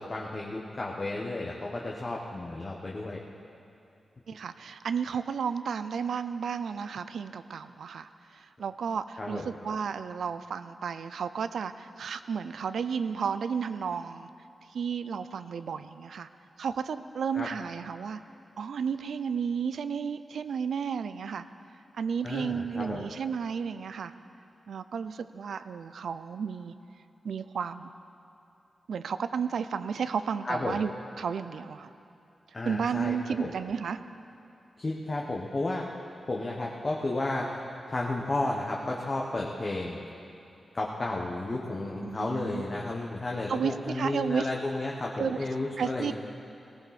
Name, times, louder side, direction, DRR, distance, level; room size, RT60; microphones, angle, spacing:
voice 1, 0.0-3.2 9.2-9.5 17.3-17.5 22.2-23.1 30.4-30.8 32.5-33.5 34.8-35.8 36.3-40.0 40.7-46.1, left 2 dB, 30° left, -2 dB, 1.2 m, -32 dB
voice 2, 4.3-14.3 14.7-16.3 16.6-18.2 18.6-21.4 21.9-24.1 24.7-26.7 27.2-27.9 28.9-30.9 31.2-31.9 32.6-34.0 42.0-42.6 43.5-44.5 45.2-45.4 45.8-46.1, right 6 dB, 85° right, 12 dB, 0.5 m, -32 dB
18.5 x 17.5 x 4.3 m, 2.7 s
wide cardioid pair, 150°, 0 cm